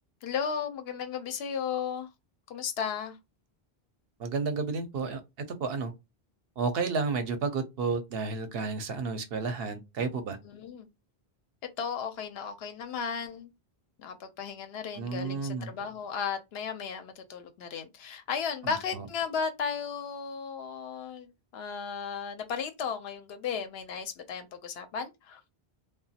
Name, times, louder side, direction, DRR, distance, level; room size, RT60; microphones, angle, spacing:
voice 1, 0.2-2.1 2.5-3.2 10.4-10.9 11.8-13.5 14.0-25.4, left 6 dB, 80° left, 0.8 m, -35 dB
voice 2, 4.2-5.2 5.6-5.9 6.6-10.4 15.0-15.7 18.6-19.0, right 4 dB, 75° right, 0.8 m, -31 dB
2.9 x 2.2 x 2.7 m
omnidirectional pair, 1.0 m